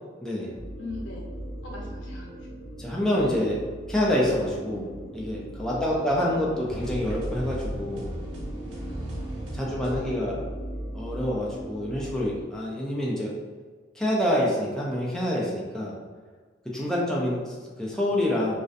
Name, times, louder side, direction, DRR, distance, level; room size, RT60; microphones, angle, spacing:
voice 1, 0.2-0.5 2.8-3.6 3.9-4.9 5.1-8.1 9.5-10.4 10.9-13.3 14.0-15.9 16.7-18.6, left 1 dB, 5° left, -5 dB, 0.3 m, -27 dB
sound 1, 0.5-12.4, right 1 dB, 25° left, 0.9 m, -39 dB
voice 2, 0.8-1.3 1.6-2.5 5.7-6.5 8.9-10.2 16.8-17.0, left 2 dB, 75° left, -2 dB, 0.6 m, -43 dB
sound 2, 6.7-10.4, equal, 75° right, 0.5 m, -36 dB
2.4 x 2.1 x 2.5 m, 1.5 s
head